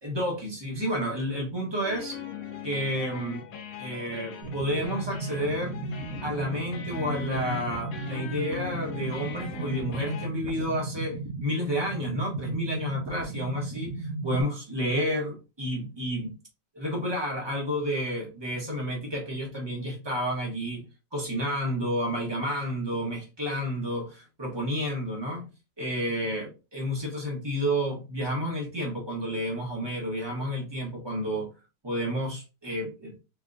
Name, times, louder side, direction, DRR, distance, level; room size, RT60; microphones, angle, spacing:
voice 1, 0.0-2.2 2.6-3.4 3.8-5.8 6.2-16.3 16.7-20.8 21.1-25.5 25.8-31.5 31.8-33.1, equal, 20° right, 0.8 m, -30 dB
sound 1, 1.8-10.3, left 6 dB, 65° left, 1.0 m, -40 dB
sound 2, 4.4-14.4, right 3 dB, 70° right, 0.8 m, -35 dB
3.7 x 3.3 x 2.4 m
omnidirectional pair, 2.0 m